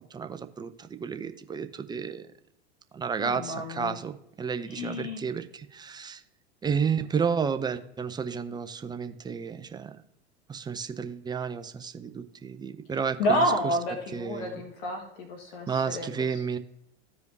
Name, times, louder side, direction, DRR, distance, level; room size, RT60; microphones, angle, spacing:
voice 1, 0.1-2.3 2.9-6.2 6.6-10.0 10.5-13.8 14.1-14.6 15.7-16.6, right 6 dB, 15° right, 10 dB, 0.5 m, -32 dB
voice 2, 3.2-3.9 4.7-5.2 13.2-16.1, equal, 60° left, 2 dB, 1.7 m, -29 dB
14.5 x 4.9 x 2.7 m, 0.79 s
hypercardioid pair, 90°, 33 cm